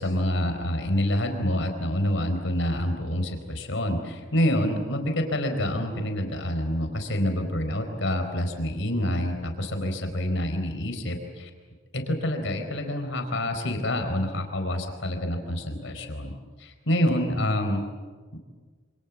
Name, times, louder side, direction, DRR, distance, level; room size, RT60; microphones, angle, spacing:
voice 1, 0.0-11.5 11.9-16.3 16.6-17.8, left 1 dB, 65° left, 5 dB, 4.3 m, -27 dB
28.0 x 27.0 x 7.3 m, 1.5 s
head